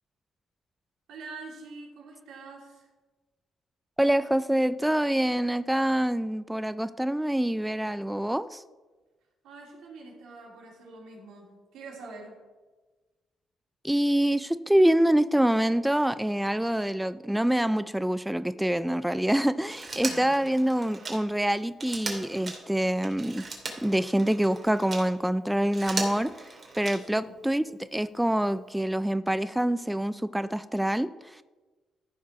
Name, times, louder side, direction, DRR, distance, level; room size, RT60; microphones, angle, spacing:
voice 1, 1.1-2.9 9.4-12.4 19.9-20.5 27.0-27.4, right 3 dB, 80° right, -2 dB, 3.1 m, -45 dB
voice 2, 4.0-8.6 13.8-23.4 23.8-26.5 26.8-27.7 27.9-31.4, right 1 dB, 5° right, 14 dB, 0.3 m, -26 dB
Telephone, 19.6-25.1 25.6-27.3 28.6-28.7, right 3 dB, 40° right, 2.5 m, -38 dB
14.0 x 4.7 x 5.7 m, 1.3 s
cardioid pair, 90°, 0 cm